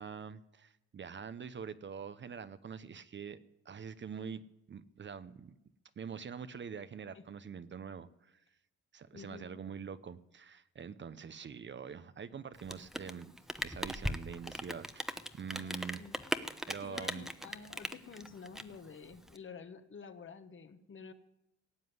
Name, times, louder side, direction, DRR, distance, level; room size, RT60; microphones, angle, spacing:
voice 1, 0.0-3.4 3.6-4.4 4.7-5.5 6.0-8.4 8.9-16.0 16.7-17.3, right 6 dB, 40° right, 13 dB, 0.8 m, -45 dB
voice 2, 9.1-9.8 15.5-16.1 16.8-21.1, left 5 dB, 40° left, 9 dB, 1.4 m, -50 dB
Rain, 12.5-19.4, equal, ahead, 0.9 m, -39 dB
17.5 x 7.7 x 9.6 m, 0.88 s
cardioid pair, 90°, 30 cm